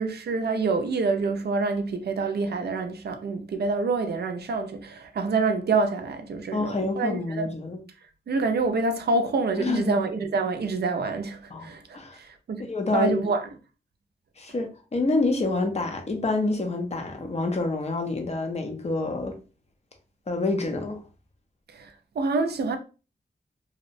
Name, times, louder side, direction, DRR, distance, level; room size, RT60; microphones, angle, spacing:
voice 1, 0.0-7.5 8.3-13.5 21.7-22.8, right 3 dB, 70° right, 0.4 m, -27 dB
voice 2, 6.5-7.8 9.6-9.9 11.5-11.7 11.9-12.2 12.7-13.1 14.4-19.4 20.3-21.0, left 3 dB, 40° left, 0.6 m, -27 dB
2.7 x 2.0 x 2.5 m
wide cardioid pair, 145°, 18 cm